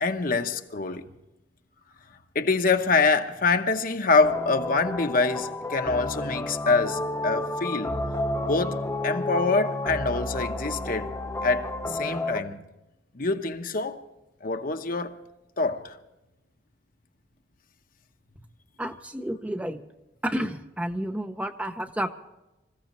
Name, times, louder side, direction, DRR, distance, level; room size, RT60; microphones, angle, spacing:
voice 1, 0.0-1.0 2.3-8.0 8.4-11.1 11.4-12.6 13.1-14.0 14.4-15.2 15.6-16.0, left 4 dB, 50° left, 1.0 m, -25 dB
sound 1, 4.2-12.4, left 2 dB, 15° left, 1.0 m, -31 dB
voice 2, 18.8-19.8 20.2-22.1, right 1 dB, 10° right, 0.7 m, -30 dB
26.5 x 15.0 x 3.1 m
head